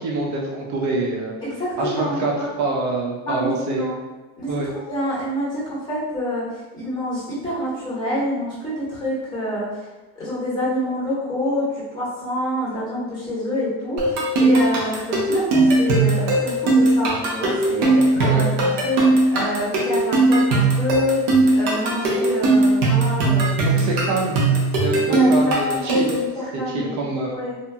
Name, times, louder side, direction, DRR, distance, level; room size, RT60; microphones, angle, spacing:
voice 1, 0.0-1.3 1.8-2.3 2.6-3.9 4.5-4.7 18.2-18.5 23.6-24.4 24.8-26.1 26.5-27.4, right 2 dB, 45° right, -2 dB, 0.8 m, -25 dB
voice 2, 1.4-2.5 3.3-3.9 4.4-9.9 10.2-18.5 18.8-23.9 24.9-27.6, equal, 10° left, -8 dB, 1.4 m, -27 dB
sound 1, 14.0-26.3, right 2 dB, 65° right, 1.0 m, -18 dB
2.7 x 2.6 x 2.3 m, 1.2 s
supercardioid pair, 130°, 40 cm